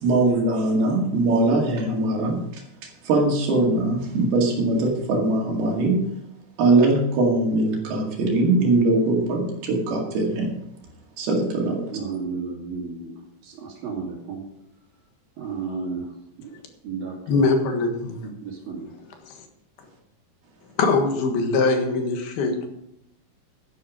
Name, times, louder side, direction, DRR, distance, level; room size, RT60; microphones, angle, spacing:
voice 1, 0.0-6.0 6.6-10.5 11.2-11.8, right 2 dB, 85° right, -1 dB, 4.2 m, -21 dB
voice 2, 11.6-13.1 13.4-14.5 15.4-16.1 16.4-16.5 16.8-17.5 18.4-18.9, right 5 dB, 65° right, 0 dB, 4.2 m, -33 dB
voice 3, 17.3-18.3 19.2-19.4 20.8-22.7, left 4 dB, 80° left, 4 dB, 3.5 m, -22 dB
12.0 x 10.5 x 5.1 m, 0.79 s
omnidirectional pair, 4.3 m